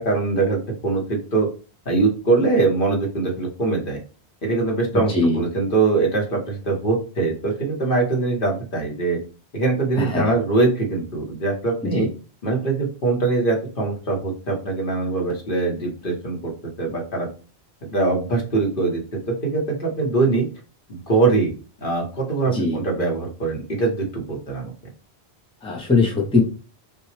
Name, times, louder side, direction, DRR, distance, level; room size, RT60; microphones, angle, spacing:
voice 1, 0.0-1.5 1.8-4.0 4.4-9.2 9.5-12.1 12.4-16.5 16.8-17.3 17.9-19.0 19.3-20.5 20.9-21.5 21.8-24.7, right 3 dB, 55° left, 0 dB, 1.3 m, -22 dB
voice 2, 4.9-5.4 10.0-10.3 11.9-12.1 22.5-22.8 25.6-26.4, left 3 dB, 5° left, -1 dB, 0.8 m, -21 dB
5.7 x 2.3 x 3.3 m, 0.36 s
omnidirectional pair, 1.1 m